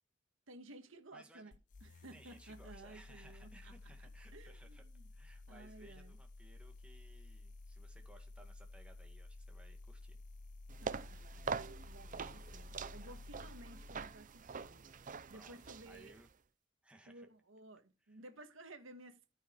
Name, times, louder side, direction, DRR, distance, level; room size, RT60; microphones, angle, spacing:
voice 1, 0.5-3.9 4.3-5.1 5.5-6.2 10.8-16.2 17.1-19.2, right 2 dB, 85° right, 1.7 m, -56 dB
voice 2, 1.1-1.6 2.1-4.8 5.1-10.2 15.3-16.3 16.8-17.3 18.1-18.2, right 1 dB, 5° right, 2.1 m, -62 dB
sound 1, 1.5-14.2, left 2 dB, 40° left, 0.5 m, -53 dB
sound 2, 10.7-16.3, right 5 dB, 40° right, 0.6 m, -45 dB
14.0 x 5.8 x 4.6 m
head